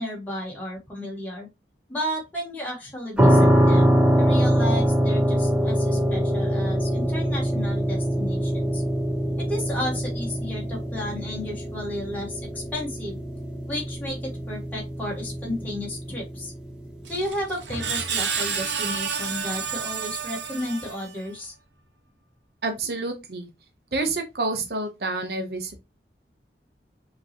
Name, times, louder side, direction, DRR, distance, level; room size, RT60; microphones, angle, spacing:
voice 1, 0.0-1.5 1.9-8.8 9.5-13.2 13.7-16.5 17.1-21.5, left 1 dB, 10° left, 1.5 m, -33 dB
sound 1, 3.2-18.0, equal, 5° right, 1.0 m, -24 dB
Screech, 17.0-21.3, right 6 dB, 85° right, 0.9 m, -30 dB
voice 2, 22.6-23.5 23.9-25.8, right 3 dB, 65° right, 1.0 m, -28 dB
5.8 x 3.1 x 2.9 m
head